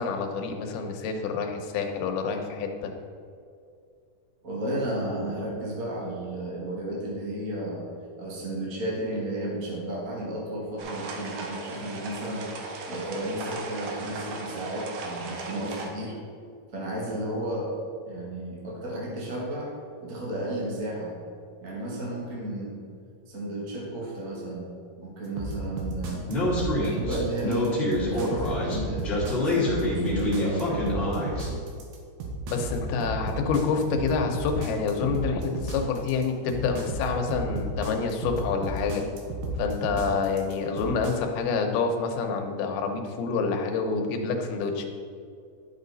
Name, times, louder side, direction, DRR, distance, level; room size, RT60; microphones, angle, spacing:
voice 1, 0.0-2.9 32.5-39.1 39.6-44.9, left 5 dB, 85° left, 3 dB, 2.8 m, -27 dB
voice 2, 4.4-7.8 8.2-12.5 12.9-16.2 16.7-17.7 18.1-19.7 20.0-21.2 21.6-22.7 23.3-24.7 25.0-26.3 26.8-31.2, right 1 dB, 50° right, -4 dB, 0.9 m, -33 dB
sound 1, 10.8-15.9, right 3 dB, 70° right, 2.3 m, -37 dB
sound 2, 25.4-41.1, right 2 dB, 85° right, 3.1 m, -33 dB
Speech, 26.3-31.5, left 1 dB, 20° left, 1.9 m, -27 dB
11.5 x 6.5 x 4.0 m, 2.4 s
omnidirectional pair, 4.4 m